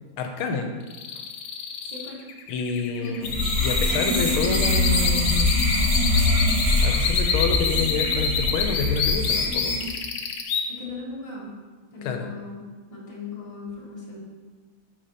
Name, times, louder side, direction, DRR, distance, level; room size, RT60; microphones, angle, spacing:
voice 1, 0.2-0.7 2.5-3.3 3.6-5.5 6.8-9.8 12.0-12.3, left 5 dB, 85° left, 4 dB, 1.5 m, -28 dB
sound 1, 0.9-10.6, left 6 dB, 70° left, 0.9 m, -27 dB
voice 2, 1.9-2.2 3.0-3.3 10.7-11.5 11.9-14.2, left 3 dB, 15° left, -7 dB, 1.6 m, -37 dB
sound 2, 3.2-9.9, left 2 dB, 50° right, 2.3 m, -23 dB
8.5 x 5.3 x 2.8 m, 1.4 s
omnidirectional pair, 2.3 m